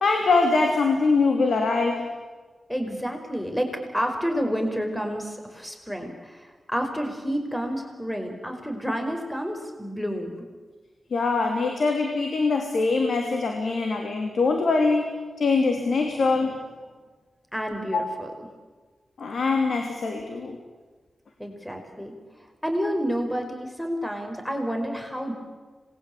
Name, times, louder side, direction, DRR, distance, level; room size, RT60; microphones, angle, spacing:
voice 1, 0.0-2.1 11.1-15.1 15.4-16.5 17.9-18.0 19.2-20.6, left 3 dB, 75° left, 4 dB, 3.1 m, -23 dB
voice 2, 2.7-10.5 17.5-18.3 21.4-22.1 22.4-25.3, equal, 10° left, 4 dB, 5.1 m, -29 dB
27.0 x 21.0 x 8.7 m, 1.4 s
cardioid pair, 50°, 0 cm